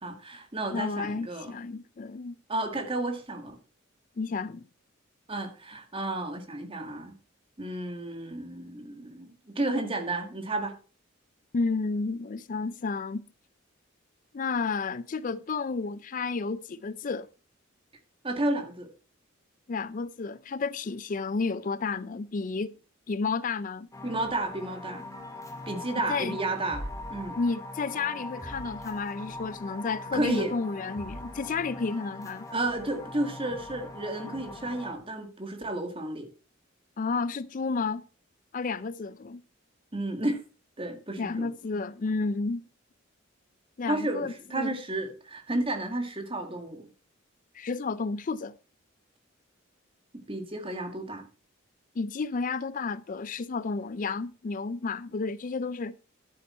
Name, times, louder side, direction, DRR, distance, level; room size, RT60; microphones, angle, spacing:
voice 1, 0.0-1.6 2.5-3.6 5.3-7.1 7.6-10.7 18.2-18.9 24.0-25.0 25.7-27.4 30.1-30.5 32.5-36.3 39.9-40.4 40.8-41.5 43.9-46.9 50.3-51.2, right 2 dB, 25° right, 2.0 m, -32 dB
voice 2, 0.7-2.4 4.2-4.6 11.5-13.3 14.3-17.3 19.7-22.7 23.1-23.9 26.1-26.4 27.3-32.5 37.0-38.0 38.5-39.4 41.2-42.6 43.8-44.8 47.5-48.5 52.0-56.0, left 4 dB, 40° left, 0.4 m, -31 dB
sound 1, 23.9-34.9, left 1 dB, 15° left, 1.8 m, -41 dB
11.5 x 8.6 x 4.4 m
head